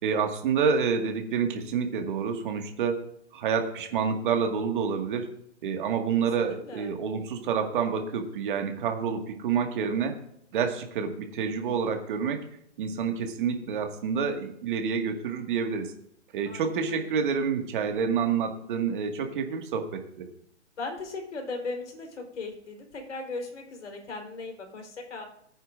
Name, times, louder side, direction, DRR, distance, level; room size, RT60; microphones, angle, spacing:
voice 1, 0.0-3.0 3.3-5.3 5.6-10.2 10.5-12.4 12.8-15.9 16.3-20.3, right 6 dB, 45° right, 4 dB, 1.9 m, -28 dB
voice 2, 6.4-7.0 16.5-17.1 20.8-25.3, left 3 dB, 80° left, 2 dB, 3.9 m, -38 dB
20.0 x 9.2 x 2.5 m, 0.71 s
hypercardioid pair, 150°, 35 cm